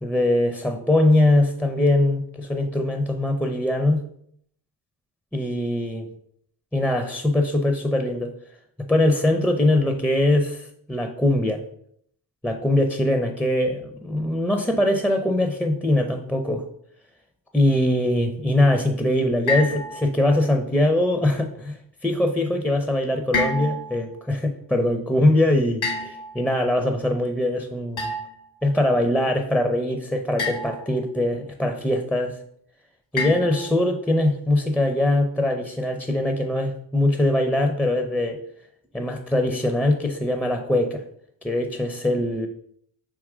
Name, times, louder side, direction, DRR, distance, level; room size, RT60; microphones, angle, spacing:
voice 1, 0.0-4.0 5.3-6.1 6.7-8.3 8.9-11.6 12.4-16.6 17.5-28.1 28.6-32.4 33.1-38.4 38.9-41.0 41.4-42.5, left 1 dB, 5° left, 5 dB, 0.4 m, -22 dB
sound 1, 19.5-20.4 23.3-24.0 25.8-26.6 28.0-28.5 30.4-31.0 33.2-33.9, left 3 dB, 75° left, 1.8 m, -29 dB
3.6 x 2.9 x 4.8 m, 0.69 s
cardioid pair, 55°, 48 cm